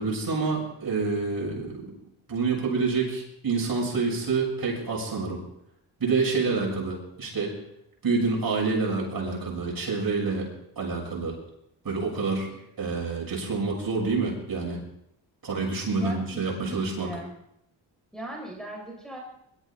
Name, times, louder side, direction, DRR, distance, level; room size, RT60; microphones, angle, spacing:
voice 1, 0.0-1.9 2.3-5.4 6.0-7.5 8.0-10.5 10.8-11.4 11.8-12.5 12.8-14.8 15.4-17.1, right 4 dB, 50° right, -2 dB, 7.2 m, -27 dB
voice 2, 16.0-17.3 18.1-19.2, right 1 dB, ahead, -2 dB, 4.2 m, -39 dB
23.0 x 13.5 x 3.8 m, 0.79 s
cardioid pair, 80°, 44 cm